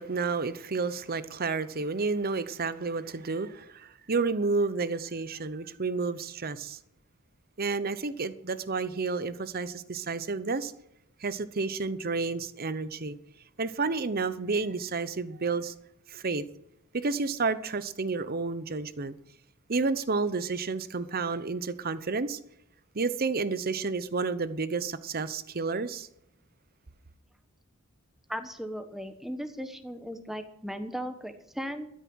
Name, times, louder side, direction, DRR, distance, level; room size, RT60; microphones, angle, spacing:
voice 1, 0.0-6.8 7.6-10.7 11.2-13.2 13.6-15.7 16.1-16.4 16.9-19.1 19.7-22.4 22.9-26.1, right 4 dB, 45° right, 14 dB, 0.8 m, -30 dB
voice 2, 28.3-31.9, equal, ahead, 8 dB, 1.1 m, -37 dB
13.5 x 9.4 x 6.3 m, 0.78 s
head